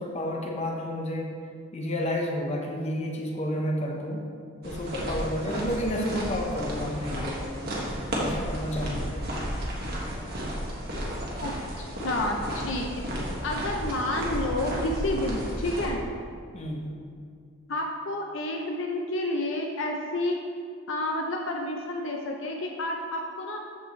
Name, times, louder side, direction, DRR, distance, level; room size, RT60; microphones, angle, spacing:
voice 1, 0.0-1.3 1.7-4.3 4.6-7.5 8.1-9.1 16.5-16.9, left 1 dB, 30° left, 0 dB, 1.0 m, -31 dB
sound 1, 4.6-15.9, equal, 45° right, 1.6 m, -33 dB
voice 2, 11.4-12.9 13.4-16.0 17.7-20.4 20.9-23.6, left 1 dB, 60° left, 1 dB, 0.6 m, -30 dB
13.0 x 5.1 x 3.2 m, 2.2 s
head